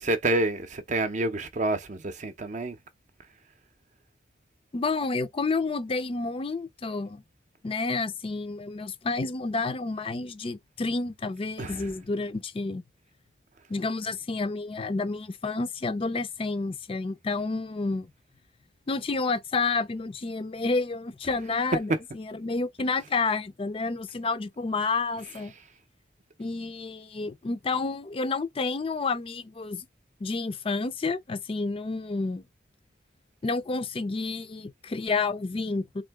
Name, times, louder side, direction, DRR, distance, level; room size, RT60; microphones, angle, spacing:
voice 1, 0.0-2.8 11.6-11.9, right 2 dB, 45° right, 0.6 m, -28 dB
voice 2, 4.7-7.2 7.6-12.8 13.7-18.1 18.9-25.5 26.4-29.9 30.2-32.4 33.4-36.0, left 3 dB, 30° left, 0.4 m, -30 dB
3.7 x 2.7 x 3.4 m
head